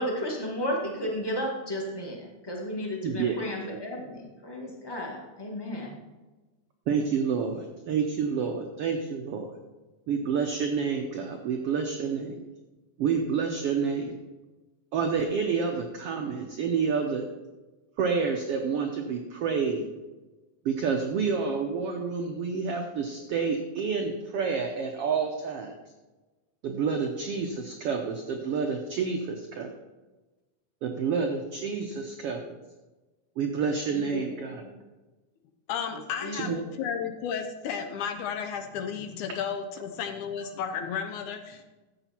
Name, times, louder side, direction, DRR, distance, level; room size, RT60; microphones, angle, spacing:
voice 1, 0.0-6.0 33.9-34.7 36.2-36.9, equal, 15° left, -1 dB, 0.8 m, -34 dB
voice 2, 3.0-3.4 6.9-9.5 10.1-12.3 13.0-14.1 14.9-17.2 18.0-19.8 20.6-25.7 26.6-29.7 30.8-32.6 33.4-34.6 36.3-36.6, right 5 dB, 85° right, 3 dB, 1.3 m, -29 dB
voice 3, 35.7-41.6, left 7 dB, 75° left, 6 dB, 2.1 m, -33 dB
12.5 x 8.0 x 4.4 m, 1.2 s
omnidirectional pair, 3.8 m